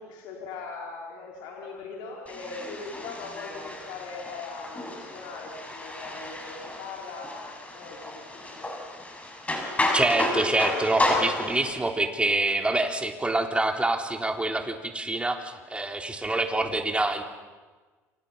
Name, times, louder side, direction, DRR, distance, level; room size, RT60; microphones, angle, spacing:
voice 1, 0.0-8.7 15.6-16.0, left 4 dB, 65° left, -1 dB, 5.0 m, -40 dB
sound 1, 2.3-11.7, left 2 dB, 15° left, 6.8 m, -31 dB
voice 2, 9.9-17.2, right 2 dB, 15° right, 4 dB, 3.9 m, -26 dB
29.0 x 27.0 x 5.7 m, 1.3 s
hypercardioid pair, 65°, 8 cm